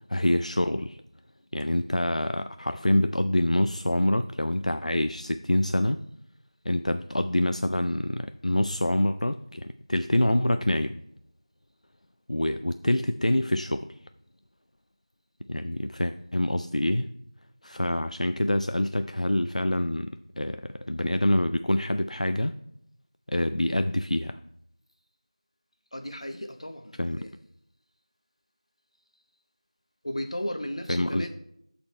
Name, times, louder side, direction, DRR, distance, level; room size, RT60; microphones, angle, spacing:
voice 1, 0.1-1.0 1.5-6.0 6.6-11.0 12.3-14.0 15.5-17.1 17.6-22.5 23.3-24.4 27.0-27.3 30.9-31.3, left 1 dB, 85° left, 0.4 m, -26 dB
voice 2, 25.9-27.3 30.0-31.3, left 1 dB, 60° left, 1.1 m, -35 dB
12.5 x 4.3 x 3.2 m
figure-of-eight pair, 175°, 4 cm